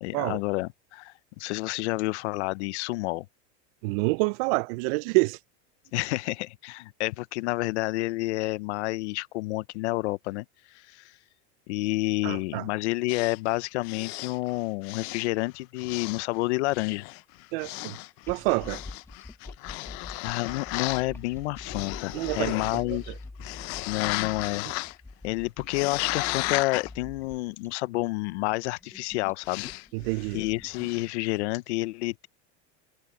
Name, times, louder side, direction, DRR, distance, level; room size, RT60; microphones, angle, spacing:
voice 1, 0.0-3.3 5.9-10.4 10.7-11.1 11.7-17.0 20.2-23.1 23.9-24.7 25.2-29.7 30.3-32.3, left 21 dB, 90° left, 0.7 m, -29 dB
voice 2, 3.8-5.4 12.2-12.6 17.5-18.0 18.3-18.8 22.1-23.0 29.9-30.4, right 27 dB, 60° right, 0.5 m, -27 dB
sound 1, 13.1-15.4 15.8-16.4 16.7-21.1 21.6-23.1 23.4-25.0 25.6-26.9 29.4-29.9 30.1-30.4 30.6-31.1, left 23 dB, 50° left, 0.5 m, -35 dB
sound 2, 18.2-31.3, left 2 dB, 5° left, 2.0 m, -45 dB
supercardioid pair, 155°, 33 cm